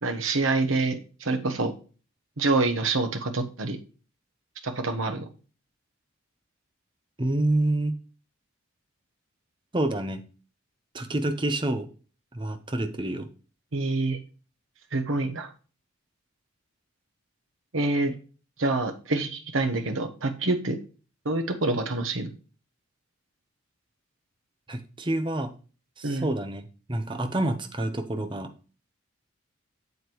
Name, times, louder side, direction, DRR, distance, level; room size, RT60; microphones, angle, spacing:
voice 1, 0.0-1.7 2.4-3.8 4.6-5.3 13.7-14.2 14.9-15.5 17.7-18.1 18.6-20.8 21.2-22.3 26.0-26.3, right 3 dB, 75° right, 6 dB, 1.1 m, -26 dB
voice 2, 7.2-8.0 9.7-10.2 10.9-11.9 12.3-13.3 24.7-25.5 26.0-26.6 26.9-28.5, right 1 dB, 25° right, 7 dB, 0.8 m, -27 dB
8.1 x 7.4 x 3.1 m, 0.36 s
head